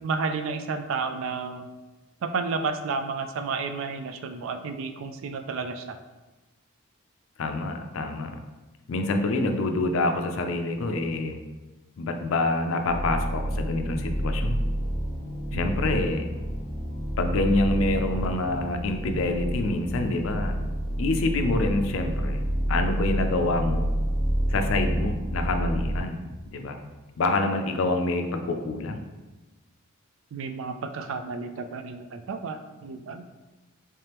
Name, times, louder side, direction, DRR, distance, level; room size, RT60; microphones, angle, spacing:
voice 1, 0.0-1.7 2.2-6.0 15.5-15.8 30.3-33.2, right 4 dB, 65° right, 7 dB, 0.3 m, -31 dB
voice 2, 7.4-8.3 8.9-11.4 12.0-14.6 15.5-16.3 17.2-20.6 21.0-22.4 22.7-23.9 24.5-26.2 26.5-26.8 27.2-29.0, left 2 dB, 65° left, 6 dB, 0.4 m, -26 dB
sound 1, 12.8-26.0, equal, 10° right, 1.0 m, -29 dB
3.3 x 3.2 x 2.9 m, 1.2 s
head